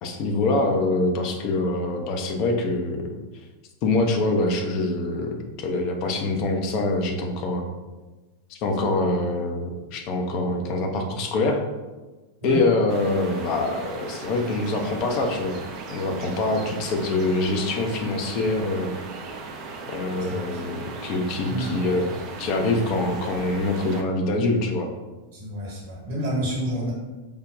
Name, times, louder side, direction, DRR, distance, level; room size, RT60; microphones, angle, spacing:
voice 1, 0.0-3.0 3.8-7.7 8.5-11.6 12.4-15.6 15.9-18.9 19.9-22.1 22.4-24.9, left 2 dB, 40° left, 3 dB, 0.5 m, -24 dB
sound 1, 12.9-24.0, right 3 dB, 40° right, 0.4 m, -37 dB
voice 2, 20.2-20.6 21.4-21.8 23.0-23.1 25.3-26.9, equal, 55° right, -3 dB, 1.2 m, -29 dB
4.9 x 2.2 x 2.4 m, 1.2 s
figure-of-eight pair, 90°, 0 cm